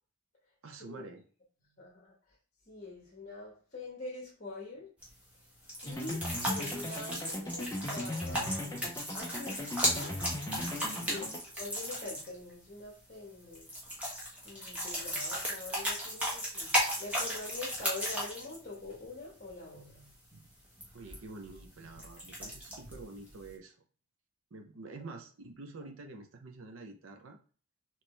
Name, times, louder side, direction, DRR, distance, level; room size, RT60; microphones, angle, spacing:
voice 1, 0.6-1.2 7.1-7.3 11.0-11.4 20.9-23.7 24.5-27.4, right 3 dB, 70° right, 4 dB, 0.6 m, -47 dB
voice 2, 1.8-2.1 2.7-4.9 5.8-8.9 9.1-10.2 10.9-11.2 11.6-13.7 14.4-20.1, left 2 dB, 35° left, -4 dB, 1.3 m, -45 dB
sound 1, 5.0-23.5, equal, 5° right, 1.2 m, -36 dB
sound 2, 5.9-11.4, left 1 dB, 15° left, 0.5 m, -38 dB
4.3 x 3.1 x 3.2 m, 0.39 s
head